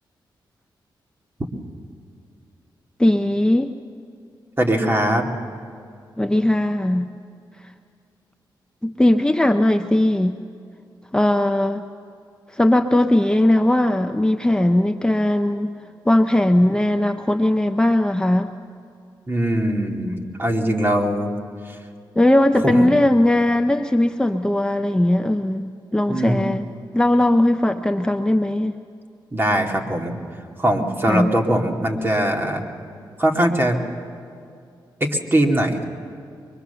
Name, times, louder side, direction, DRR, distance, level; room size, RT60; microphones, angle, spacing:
voice 1, 3.0-3.7 6.2-7.1 8.8-10.4 11.1-11.8 12.5-15.7 16.1-18.5 22.2-26.7 26.9-28.8 31.1-31.3, left 1 dB, 10° left, 6 dB, 0.7 m, -18 dB
voice 2, 4.6-5.3 19.3-21.4 21.7-21.8 22.5-22.9 26.1-26.5 29.3-30.2 30.6-32.6 33.2-33.8 35.0-35.8, right 1 dB, 25° right, 2 dB, 2.4 m, -21 dB
24.0 x 22.0 x 7.0 m, 2.5 s
cardioid pair, 80°, 8 cm